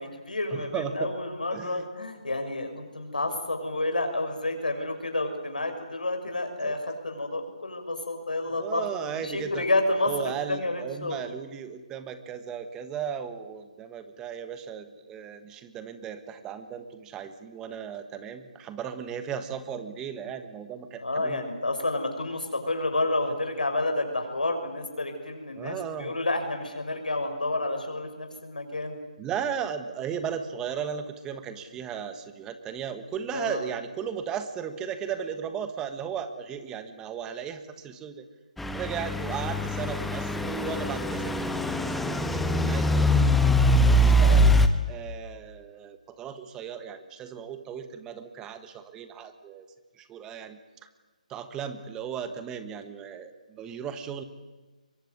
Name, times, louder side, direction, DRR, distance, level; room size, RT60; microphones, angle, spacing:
voice 1, 0.0-11.2 21.0-29.0 33.3-33.7 44.1-44.4, left 2 dB, 85° left, 5 dB, 6.4 m, -30 dB
voice 2, 0.5-1.1 1.5-1.8 6.6-6.7 8.5-9.7 10.0-21.4 25.6-26.2 29.2-38.3 38.7-43.4 43.9-44.6 44.9-49.7 50.0-50.6 51.3-54.2, right 7 dB, 15° right, 10 dB, 1.4 m, -36 dB
Truck / Idling, 38.6-44.7, equal, 5° left, 1.1 m, -23 dB
23.5 x 23.0 x 9.7 m, 1.2 s
figure-of-eight pair, 150°, 4 cm